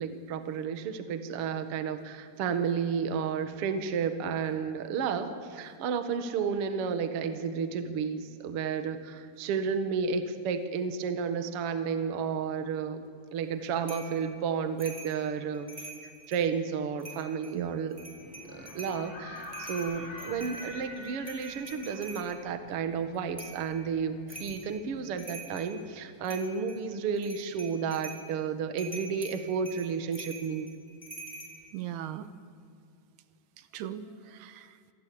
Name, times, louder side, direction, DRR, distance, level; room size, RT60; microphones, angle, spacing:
voice 1, 0.0-13.0 13.3-18.0 18.5-30.7, right 6 dB, 90° right, 8 dB, 1.2 m, -32 dB
sound 1, 13.9-14.1 14.8-15.2 15.5-16.5 17.0-17.5 17.9-19.0 19.4-22.3 23.4-23.6 24.3-24.7 25.0-25.7 26.2-26.8 27.2-28.2 28.8-31.5, right 2 dB, 5° right, 4.1 m, -44 dB
voice 2, 17.5-17.9 31.7-32.3 33.6-34.9, right 11 dB, 75° right, 11 dB, 2.7 m, -39 dB
sound 2, 18.2-25.0, left 2 dB, 85° left, 7.3 m, -46 dB
26.5 x 18.5 x 8.6 m, 2.3 s
omnidirectional pair, 5.1 m